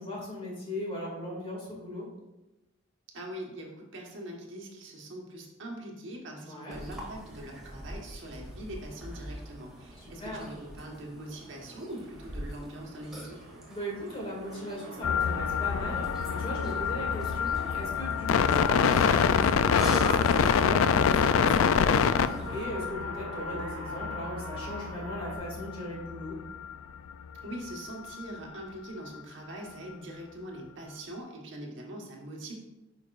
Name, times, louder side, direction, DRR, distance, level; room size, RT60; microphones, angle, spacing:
voice 1, 0.0-2.1 6.4-6.8 9.9-10.5 13.7-26.4, left 1 dB, 30° left, -3 dB, 2.1 m, -38 dB
voice 2, 3.1-13.5 27.4-32.5, right 1 dB, 65° right, -1 dB, 1.3 m, -42 dB
Burping eructation, 6.7-22.6, equal, ahead, 1.5 m, -44 dB
sound 1, 11.1-25.4, right 2 dB, 90° right, 1.0 m, -46 dB
sound 2, 15.0-26.8 27.1-27.2 27.4-27.7 28.1-28.2, left 7 dB, 90° left, 0.3 m, -26 dB
8.6 x 5.3 x 2.4 m, 0.99 s
head